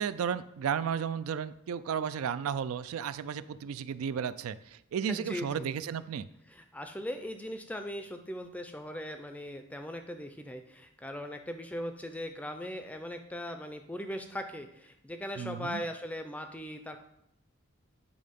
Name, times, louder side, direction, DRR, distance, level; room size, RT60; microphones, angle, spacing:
voice 1, 0.0-6.3 15.4-15.8, right 7 dB, 80° right, 15 dB, 0.3 m, -33 dB
voice 2, 5.1-5.7 6.5-17.0, equal, 5° left, 6 dB, 0.4 m, -39 dB
8.6 x 3.7 x 5.2 m, 0.78 s
head